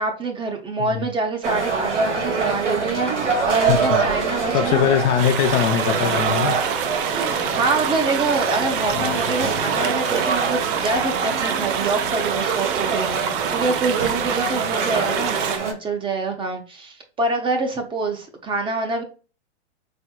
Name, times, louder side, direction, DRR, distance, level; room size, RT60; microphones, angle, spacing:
voice 1, 0.0-4.9 6.3-6.6 7.1-19.0, right 3 dB, 15° right, 0.7 m, -26 dB
sound 1, 1.4-15.7, right 4 dB, 80° right, 1.5 m, -25 dB
voice 2, 3.6-4.0 4.5-6.6 8.9-9.2, left 9 dB, 35° left, 0.5 m, -21 dB
sound 2, 5.2-15.6, right 9 dB, 50° right, 0.6 m, -27 dB
4.3 x 3.4 x 2.3 m
hypercardioid pair, 125°, 34 cm